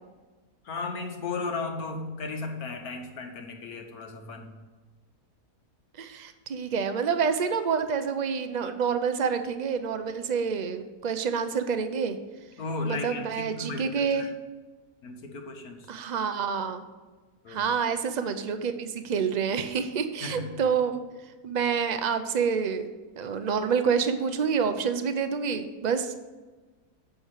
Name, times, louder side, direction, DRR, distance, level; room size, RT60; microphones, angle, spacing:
voice 1, 0.6-4.6 12.6-14.3 15.0-15.9 17.4-17.6 20.2-20.6, left 3 dB, 75° left, 3 dB, 1.7 m, -35 dB
voice 2, 6.0-12.2 12.9-14.3 15.9-16.8 17.5-21.0 21.4-22.9 23.2-26.2, right 6 dB, 65° right, 9 dB, 0.4 m, -28 dB
8.2 x 5.9 x 6.6 m, 1.3 s
omnidirectional pair, 1.6 m